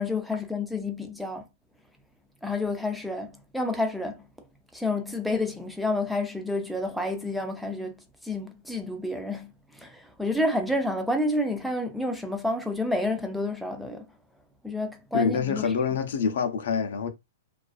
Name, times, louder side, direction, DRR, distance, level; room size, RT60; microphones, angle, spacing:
voice 1, 0.0-1.5 2.4-4.3 4.7-14.1 14.6-15.6, left 2 dB, ahead, 0.3 m, -29 dB
voice 2, 15.1-17.1, left 6 dB, 70° left, 0.5 m, -26 dB
2.4 x 2.3 x 2.3 m
supercardioid pair, 165°, 0 cm